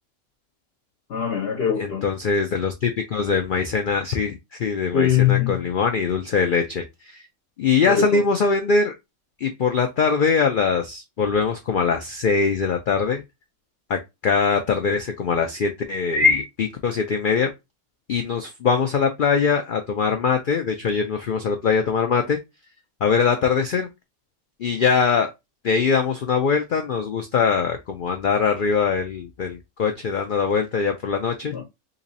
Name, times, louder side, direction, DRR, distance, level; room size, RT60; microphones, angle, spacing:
voice 1, 1.1-2.0 4.9-5.6 7.9-8.2 31.5-31.6, left 9 dB, 55° left, 0.8 m, -21 dB
voice 2, 1.8-7.2 7.6-8.9 9.4-13.2 13.9-17.5 18.1-22.4 23.0-23.9 24.6-25.3 25.6-31.5, left 5 dB, 80° left, 0.4 m, -22 dB
3.0 x 2.7 x 3.9 m
omnidirectional pair, 1.5 m